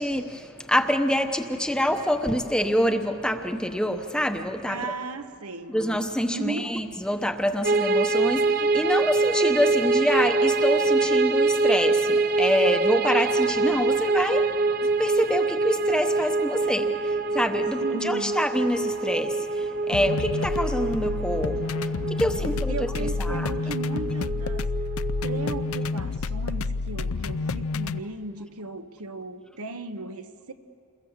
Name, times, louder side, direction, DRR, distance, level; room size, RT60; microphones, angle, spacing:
voice 1, 0.0-4.9 5.7-23.5, equal, 5° left, 6 dB, 0.9 m, -26 dB
voice 2, 4.7-5.8 6.3-6.7 17.8-18.4 22.3-24.7 25.2-30.5, right 3 dB, 85° right, 8 dB, 1.2 m, -36 dB
sound 1, 7.6-25.9, right 3 dB, 45° right, 0.8 m, -25 dB
sound 2, 19.9-28.0, left 4 dB, 70° left, 0.5 m, -29 dB
28.5 x 21.5 x 7.3 m, 2.6 s
head